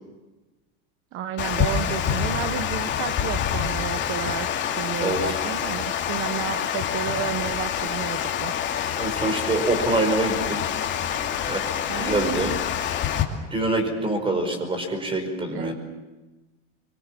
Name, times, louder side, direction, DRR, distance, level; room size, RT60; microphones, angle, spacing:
voice 1, 1.1-4.5 4.8-8.5 11.9-12.6 15.5-15.7, right 10 dB, 35° right, 11 dB, 1.1 m, -32 dB
Water, 1.4-13.2, left 9 dB, 30° left, 2.8 m, -27 dB
voice 2, 5.0-5.4 9.0-10.6 11.4-11.7 11.9-12.5 13.5-15.7, right 2 dB, 15° right, 7 dB, 5.0 m, -25 dB
25.0 x 23.5 x 7.5 m, 1.2 s
supercardioid pair, 150°, 37 cm